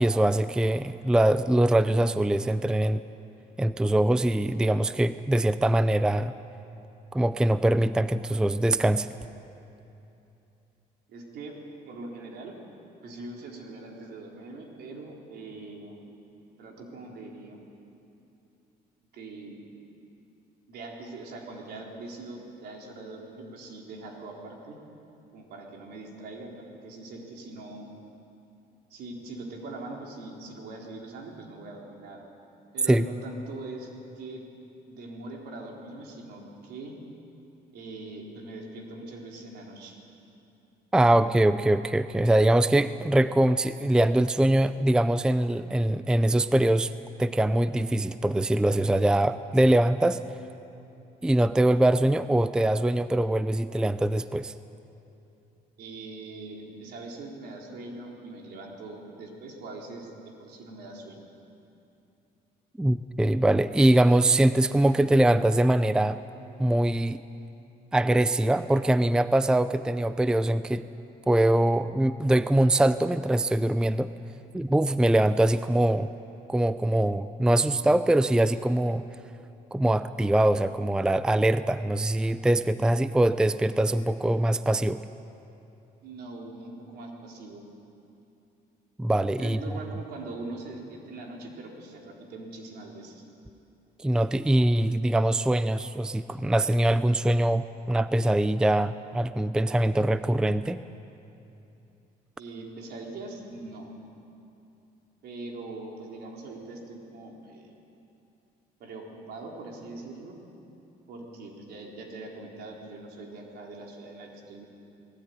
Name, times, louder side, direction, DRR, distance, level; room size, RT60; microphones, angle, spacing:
voice 1, 0.0-3.0 3.6-6.3 7.1-9.1 32.9-33.0 40.9-46.9 47.2-50.2 51.2-54.5 62.8-66.2 66.6-67.2 67.9-70.9 71.3-74.1 74.5-76.1 76.5-79.0 79.7-85.0 89.0-89.6 94.0-100.8, right 1 dB, 5° right, 13 dB, 0.4 m, -23 dB
voice 2, 11.1-11.5 11.9-12.5 13.0-16.0 16.6-17.6 19.1-19.6 20.7-24.8 25.3-27.9 28.9-32.2 32.7-34.4 34.9-37.0 37.7-40.0 55.8-60.1 60.4-61.2 86.0-87.6 89.4-93.2 102.4-103.9 105.2-107.7 108.8-110.3 111.1-114.6, right 2 dB, 70° right, 0 dB, 4.0 m, -42 dB
19.5 x 17.0 x 9.5 m, 2.8 s
cardioid pair, 110°, 17 cm